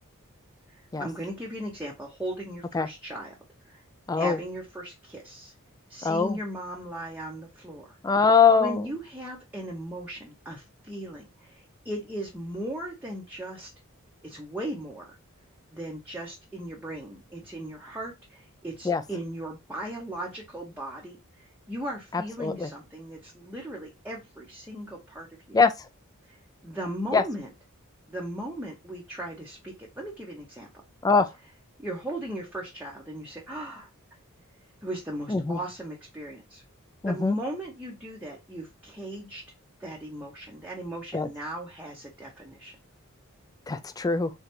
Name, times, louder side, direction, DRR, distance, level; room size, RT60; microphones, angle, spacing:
voice 1, 0.7-3.3 3.7-3.8 4.2-5.5 5.9-8.0 8.6-13.7 14.2-15.2 15.7-25.3 26.3-26.4 26.6-27.5 28.1-30.7 31.8-33.9 34.8-36.6 37.1-39.4 39.8-42.7, right 1 dB, 10° right, 0.7 m, -37 dB
voice 2, 4.1-4.4 6.0-6.4 8.0-8.8 18.8-19.0 22.1-22.7 25.5-25.7 27.1-27.2 31.0-31.3 35.3-35.6 37.0-37.4 41.1-41.3 43.7-44.3, left 5 dB, 15° left, 0.4 m, -22 dB
3.8 x 3.2 x 2.9 m
head